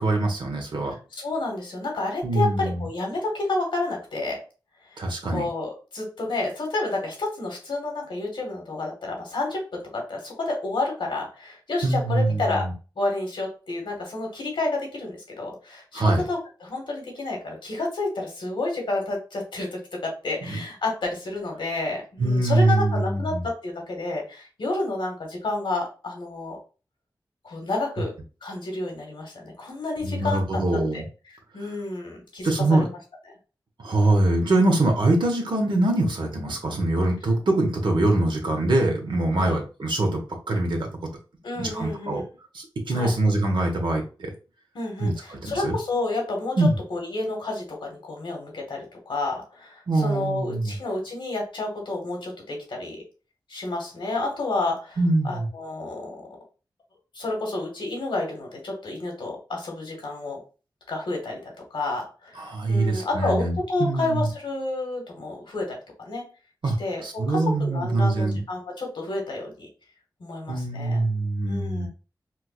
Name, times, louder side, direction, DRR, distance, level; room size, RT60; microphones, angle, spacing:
voice 1, 0.0-0.9 2.2-2.8 5.0-5.5 11.8-12.7 15.9-16.2 20.4-20.6 22.2-23.4 30.0-31.0 32.4-32.9 33.8-40.9 41.6-42.2 42.5-44.3 45.0-45.7 46.6-46.8 49.9-50.8 55.0-55.5 62.4-64.3 66.6-68.4 70.5-71.9, right 2 dB, 80° right, 2 dB, 1.0 m, -23 dB
voice 2, 1.1-4.4 4.9-5.0 5.3-12.6 13.0-26.6 27.4-28.1 28.4-31.0 31.5-32.8 39.3-39.6 41.4-42.2 42.9-43.1 44.7-53.0 53.5-55.0 55.2-56.2 57.1-60.4 60.9-62.4 62.7-66.2 66.8-69.7 70.2-71.0 71.5-71.9, left 2 dB, 85° left, 0 dB, 1.4 m, -30 dB
4.5 x 2.3 x 2.4 m, 0.34 s
cardioid pair, 50°, 8 cm